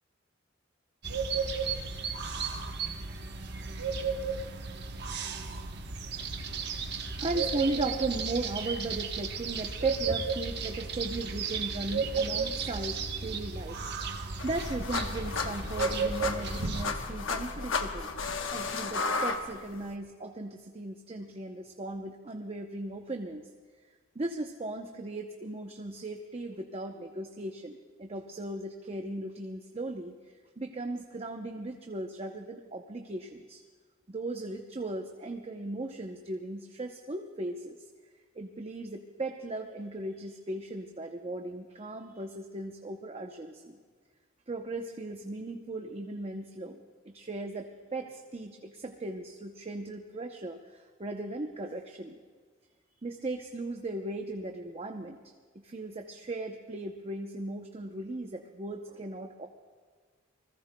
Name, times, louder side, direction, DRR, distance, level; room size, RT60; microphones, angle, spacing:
sound 1, 1.0-16.8, right 5 dB, 60° right, 1.0 m, -33 dB
voice 1, 7.2-13.8 14.1-18.1 18.5-23.5 24.1-30.1 30.6-33.6 34.1-37.8 38.4-43.8 44.5-52.2 53.0-55.2 55.5-59.5, right 2 dB, 30° right, 3 dB, 0.7 m, -37 dB
sound 2, 14.4-19.9, left 4 dB, 80° left, 1.1 m, -33 dB
28.5 x 20.5 x 2.2 m, 1.5 s
head